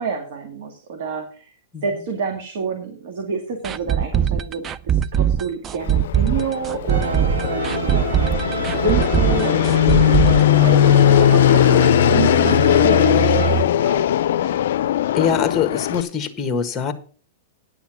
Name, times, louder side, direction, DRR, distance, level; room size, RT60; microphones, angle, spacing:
voice 1, 0.0-1.5 1.8-8.3 8.7-10.8 11.2-14.1 14.4-14.5, right 5 dB, 65° right, 3 dB, 2.2 m, -29 dB
sound 1, 3.6-11.4 11.6-11.7 12.1-12.2, right 9 dB, 25° right, 0.5 m, -21 dB
Fixed-wing aircraft airplane, 5.8-16.0, left 11 dB, 75° left, 0.4 m, -18 dB
sound 2, 6.9-13.6, right 5 dB, 85° right, 1.4 m, -26 dB
voice 2, 15.1-16.9, left 7 dB, 20° left, 9 dB, 1.4 m, -23 dB
9.9 x 7.1 x 5.9 m, 0.41 s
hypercardioid pair, 130°, 0 cm